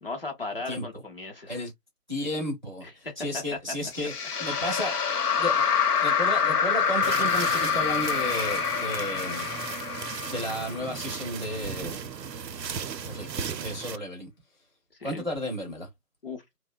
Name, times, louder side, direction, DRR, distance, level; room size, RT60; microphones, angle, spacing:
voice 1, 0.0-1.6 3.0-3.2 3.5-3.6 14.9-15.3 16.2-16.4, left 3 dB, 35° left, 0.7 m, -36 dB
voice 2, 2.1-4.1 4.4-5.0 5.4-5.6 5.9-9.5 10.3-12.1 13.0-14.3 15.0-15.9, equal, 30° right, 0.5 m, -33 dB
sound 1, 3.9-11.2, left 6 dB, 70° left, 0.8 m, -26 dB
sound 2, 7.0-14.0, right 7 dB, 90° right, 0.6 m, -36 dB
2.6 x 2.0 x 2.4 m
figure-of-eight pair, 155°, 48 cm